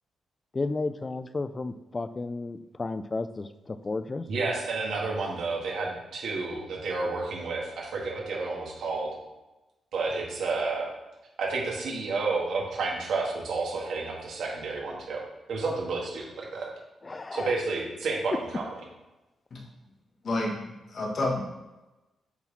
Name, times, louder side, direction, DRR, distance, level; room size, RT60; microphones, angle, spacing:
voice 1, 0.5-4.3 17.0-17.6, left 3 dB, 25° left, 11 dB, 0.3 m, -33 dB
voice 2, 4.3-9.1 9.9-10.9 11.4-15.2 15.5-16.7 17.3-18.6, right 3 dB, 75° right, -2 dB, 1.9 m, -30 dB
voice 3, 20.2-21.4, left 2 dB, 45° left, -1 dB, 1.4 m, -29 dB
7.1 x 4.1 x 4.1 m, 1.0 s
wide cardioid pair, 145°, 0 cm